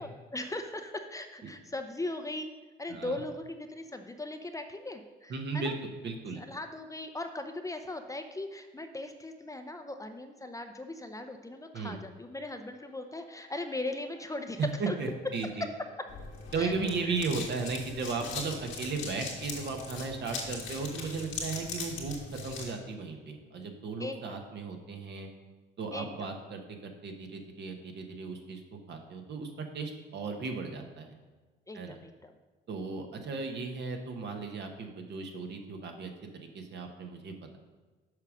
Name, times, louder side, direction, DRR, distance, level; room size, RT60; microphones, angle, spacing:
voice 1, 0.0-2.5 2.8-5.7 6.4-14.6 14.9-15.0 16.6-16.7 17.0-17.2 18.2-18.3 24.0-24.2 25.9-26.3 31.7-32.3, left 2 dB, 15° left, 6 dB, 0.6 m, -39 dB
voice 2, 2.9-3.2 5.3-6.4 11.7-12.0 14.8-15.7 16.5-25.3 25.8-28.6 28.9-31.1 31.7-31.9 32.7-37.6, right 4 dB, 60° right, 3 dB, 1.3 m, -36 dB
sound 1, 10.7-21.1, left 5 dB, 45° left, 1.2 m, -57 dB
sound 2, 16.1-22.7, left 4 dB, 85° left, 1.9 m, -40 dB
6.5 x 5.2 x 6.3 m, 1.3 s
cardioid pair, 90°, 20 cm